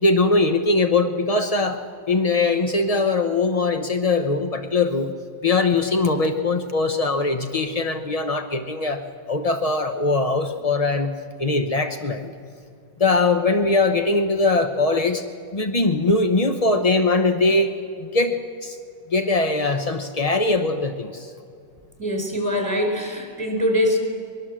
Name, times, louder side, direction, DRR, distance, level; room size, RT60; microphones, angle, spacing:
voice 1, 0.0-1.8 2.1-5.1 5.4-9.0 9.3-11.1 11.4-12.3 13.0-15.2 15.5-17.7 18.0-18.8 19.1-21.3, left 3 dB, 50° left, 6 dB, 0.4 m, -21 dB
voice 2, 22.0-24.0, left 1 dB, 5° left, 3 dB, 4.3 m, -23 dB
24.0 x 21.0 x 7.5 m, 2.5 s
omnidirectional pair, 2.1 m